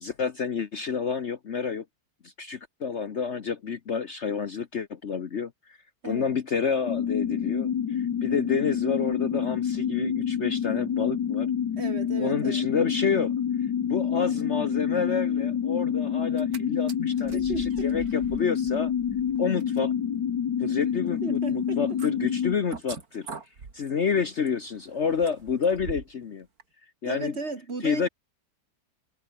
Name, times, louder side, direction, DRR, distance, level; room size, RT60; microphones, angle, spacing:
voice 1, 0.0-1.8 2.2-5.8 6.0-11.5 12.2-13.3 13.8-17.5 17.8-18.9 19.4-19.9 20.6-23.3 23.7-26.5 27.0-27.3 27.8-28.1, left 6 dB, 45° left, 1.2 m, -29 dB
sound 1, 6.9-22.5, left 8 dB, 75° left, 2.0 m, -27 dB
voice 2, 11.8-12.7 17.3-17.9 21.2-22.0 27.0-28.1, right 3 dB, 40° right, 2.4 m, -35 dB
sound 2, 16.2-16.6 16.9-26.2 26.6-26.7, right 5 dB, 60° right, 3.0 m, -44 dB
omnidirectional pair, 1.8 m